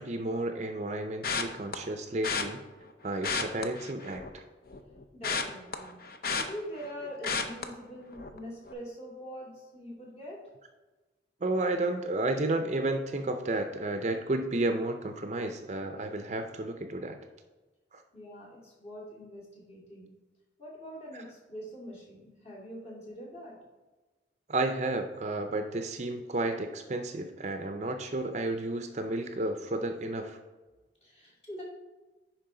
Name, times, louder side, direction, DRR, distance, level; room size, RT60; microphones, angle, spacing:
voice 1, 0.0-2.6 3.0-4.4 11.4-17.2 24.5-30.4, right 2 dB, 40° right, 6 dB, 0.5 m, -32 dB
sound 1, 1.2-1.8 2.2-2.4 3.1-4.4 4.7-6.9 7.2-7.6 8.1-8.4 8.7-8.8, left 5 dB, 55° left, 0.6 m, -32 dB
voice 2, 5.1-6.0 6.3-10.4 18.1-20.1 20.6-23.6 31.0-31.6, equal, 35° left, -4 dB, 2.4 m, -43 dB
10.5 x 4.6 x 3.8 m, 1.2 s
head